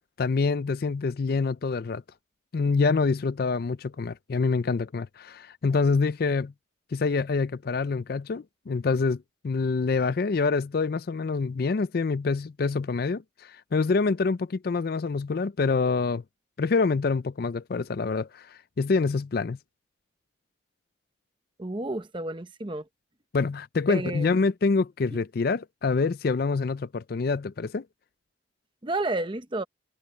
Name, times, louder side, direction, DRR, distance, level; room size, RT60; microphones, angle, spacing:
voice 1, 0.2-2.0 2.5-6.5 6.9-16.2 16.6-19.6 23.3-27.8, left 4 dB, 50° left, 0.4 m, -26 dB
voice 2, 21.6-22.8 23.9-24.3 28.8-29.6, right 2 dB, 25° right, 0.8 m, -31 dB
head